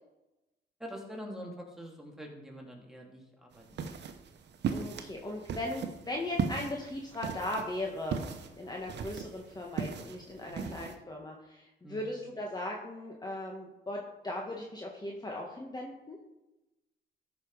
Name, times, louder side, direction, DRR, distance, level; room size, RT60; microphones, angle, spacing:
voice 1, 0.8-4.0 10.5-10.7 11.8-12.1, equal, ahead, 0 dB, 2.7 m, -45 dB
sound 1, 3.5-10.9, right 6 dB, 60° right, 1.1 m, -38 dB
voice 2, 4.7-8.2 8.5-16.2, left 1 dB, 20° left, 0 dB, 1.6 m, -38 dB
14.0 x 6.1 x 4.8 m, 0.98 s
cardioid pair, 90°, 20 cm